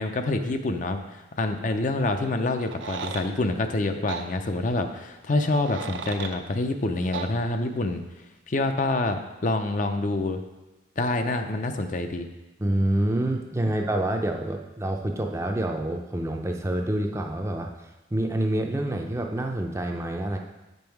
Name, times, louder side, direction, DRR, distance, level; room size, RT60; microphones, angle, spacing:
voice 1, 0.0-8.0 8.5-10.4 11.0-12.3, left 2 dB, 40° left, 6 dB, 0.5 m, -27 dB
sound 1, 2.6-3.3 4.1-4.3 5.4-6.4 7.1-7.3, right 6 dB, 75° right, 0.6 m, -35 dB
voice 2, 12.6-17.7 18.1-20.4, right 1 dB, 15° right, 3 dB, 0.5 m, -27 dB
7.7 x 5.4 x 4.6 m, 1.0 s
head